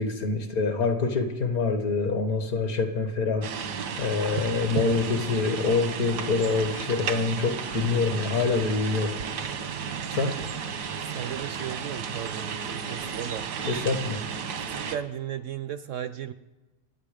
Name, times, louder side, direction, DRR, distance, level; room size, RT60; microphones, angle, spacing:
voice 1, 0.0-3.5 4.0-9.2 10.1-10.4 13.6-14.2, left 4 dB, 65° left, 6 dB, 2.1 m, -26 dB
sound 1, 3.4-15.0, right 6 dB, 85° right, 1.8 m, -33 dB
voice 2, 11.1-13.5 14.6-16.3, right 10 dB, 65° right, 12 dB, 0.8 m, -35 dB
27.0 x 9.5 x 5.1 m, 1.1 s
omnidirectional pair, 1.7 m